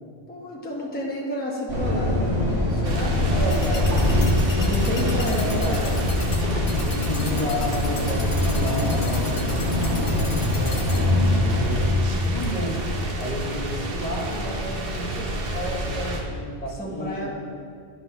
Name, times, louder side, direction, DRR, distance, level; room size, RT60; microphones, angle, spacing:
voice 1, 0.3-3.7 4.6-6.1 16.7-17.3, left 1 dB, 10° left, -3 dB, 0.9 m, -31 dB
sound 1, 1.7-11.9, left 1 dB, 85° right, 1.9 m, -24 dB
sound 2, 2.8-16.2, equal, 65° right, 1.1 m, -28 dB
voice 2, 3.3-4.1 4.6-5.8 6.8-11.2 11.6-12.8 13.2-17.3, left 1 dB, 40° left, -3 dB, 1.2 m, -33 dB
sound 3, 3.5-11.0, left 2 dB, 55° left, 1.0 m, -36 dB
10.5 x 4.0 x 5.7 m, 2.2 s
omnidirectional pair, 1.1 m